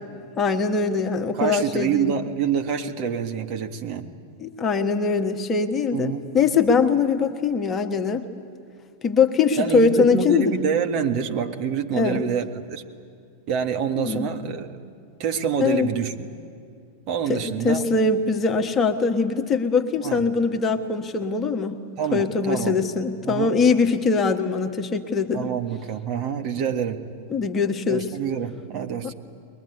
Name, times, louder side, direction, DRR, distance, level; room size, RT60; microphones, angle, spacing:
voice 1, 0.4-2.1 4.4-8.2 9.0-10.6 11.9-12.2 14.0-14.3 15.6-15.9 17.3-21.8 22.1-25.5 27.3-28.1 29.0-29.1, left 4 dB, 20° left, 5 dB, 1.4 m, -22 dB
voice 2, 1.3-4.1 5.9-6.3 9.6-12.8 13.5-14.9 15.2-16.3 17.1-17.8 20.0-20.3 22.0-22.8 23.2-23.5 25.3-27.0 27.9-29.1, right 7 dB, 40° right, 4 dB, 1.7 m, -26 dB
22.0 x 22.0 x 9.8 m, 2.4 s
figure-of-eight pair, 90°, 0 cm